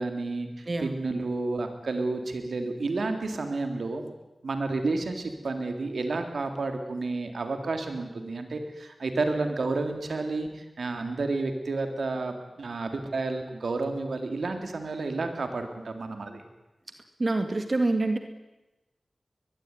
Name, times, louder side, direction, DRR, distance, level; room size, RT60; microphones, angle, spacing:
voice 1, 0.0-4.1 4.4-16.4, right 3 dB, 85° right, 6 dB, 3.6 m, -31 dB
voice 2, 17.2-18.2, right 2 dB, 45° right, 7 dB, 2.1 m, -26 dB
22.5 x 21.5 x 9.9 m, 1.0 s
wide cardioid pair, 70°, 0 cm